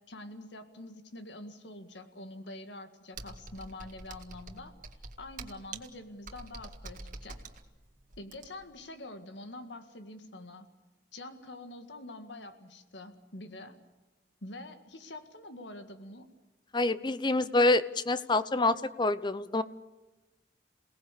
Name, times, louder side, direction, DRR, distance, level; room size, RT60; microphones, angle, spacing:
voice 1, 0.0-4.7 5.2-7.4 8.2-10.7 11.1-13.8 14.4-16.3, left 2 dB, 85° left, 8 dB, 2.0 m, -46 dB
Computer keyboard, 3.1-8.8, right 3 dB, 50° right, 1.8 m, -46 dB
voice 2, 16.7-19.6, left 2 dB, 25° left, 15 dB, 0.7 m, -27 dB
28.0 x 18.0 x 8.4 m, 1.2 s
head